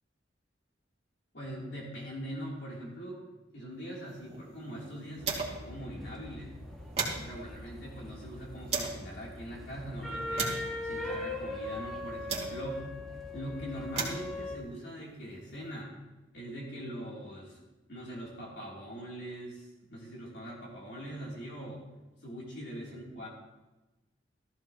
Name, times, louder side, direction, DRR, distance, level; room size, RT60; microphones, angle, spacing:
voice 1, 1.3-3.2 3.5-6.6 7.1-10.5 10.8-12.9 13.3-16.0 16.3-17.6 17.9-21.9 22.2-23.3, equal, 65° left, -5 dB, 3.2 m, -42 dB
sound 1, 4.0-5.8 6.1-6.2 6.5-9.1 9.7-12.9 13.6-15.8, right 4 dB, 35° right, 2.3 m, -39 dB
sound 2, 5.2-14.6, left 2 dB, ahead, 1.4 m, -40 dB
16.0 x 14.0 x 3.0 m, 1.1 s
head